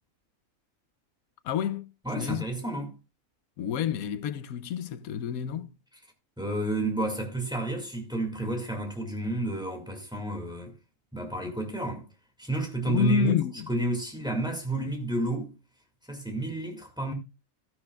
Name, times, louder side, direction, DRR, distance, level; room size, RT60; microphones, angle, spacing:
voice 1, 1.4-1.8 2.2-2.4 3.6-5.7 11.4-11.5 12.8-13.7, left 8 dB, 80° left, 1.2 m, -29 dB
voice 2, 2.0-3.0 6.4-10.7 11.1-12.1 12.4-13.4 13.7-15.5 16.1-17.1, right 2 dB, 5° right, 2.1 m, -31 dB
13.0 x 10.5 x 2.4 m
omnidirectional pair, 1.5 m